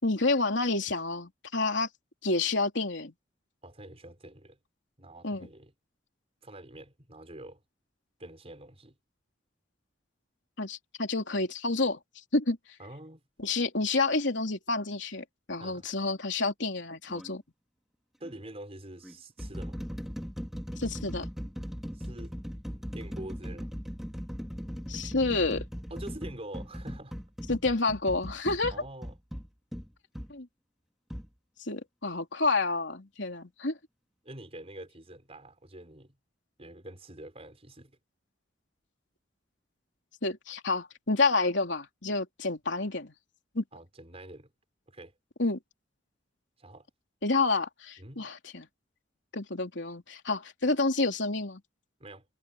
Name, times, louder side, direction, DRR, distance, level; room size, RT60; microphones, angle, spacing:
voice 1, 0.0-1.9 2.2-3.1 5.2-5.5 10.6-12.0 12.3-12.6 13.4-17.4 20.8-21.3 24.9-25.7 27.5-28.7 30.3-30.5 31.6-33.8 40.2-43.1 43.6-43.7 45.4-45.6 47.2-48.7 49.3-51.6, left 3 dB, 65° left, 3.5 m, -29 dB
voice 2, 3.6-4.6 5.0-5.7 6.4-7.6 8.2-9.0 12.8-13.2 15.6-15.9 18.2-19.8 21.9-22.4 22.7-23.7 25.9-27.2 28.7-29.1 34.2-36.2 36.6-38.0 43.7-44.5 44.9-45.1 46.6-46.9 48.0-48.3 52.0-52.3, right 1 dB, 30° right, 5.7 m, -46 dB
sound 1, 17.1-17.3 18.2-18.4 19.0-30.3 31.1-31.3, equal, ahead, 2.5 m, -39 dB
head